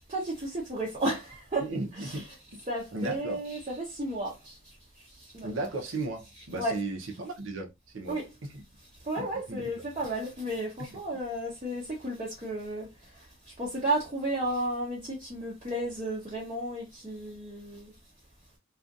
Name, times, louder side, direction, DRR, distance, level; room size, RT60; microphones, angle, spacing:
voice 1, 0.1-4.8 5.0-5.7 6.3-6.8 8.1-8.3 9.0-17.9, right 1 dB, 30° right, 0.7 m, -33 dB
voice 2, 1.6-2.3 2.5-2.6 2.9-3.4 5.4-8.6 9.2-9.7, right 2 dB, 70° right, 0.7 m, -35 dB
2.6 x 2.4 x 2.4 m
head